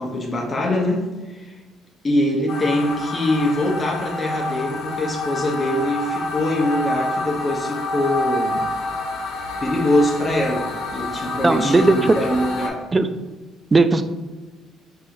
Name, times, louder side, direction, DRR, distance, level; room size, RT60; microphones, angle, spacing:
voice 1, 0.0-1.6 2.0-8.6 9.6-12.9, left 1 dB, 30° left, 0 dB, 0.7 m, -23 dB
sound 1, 2.5-12.7, left 2 dB, 80° left, 0.7 m, -28 dB
voice 2, 11.4-12.1 12.9-13.1 13.7-14.0, right 3 dB, 25° right, 10 dB, 0.3 m, -16 dB
4.2 x 3.5 x 2.6 m, 1.2 s
supercardioid pair, 85°, 0 cm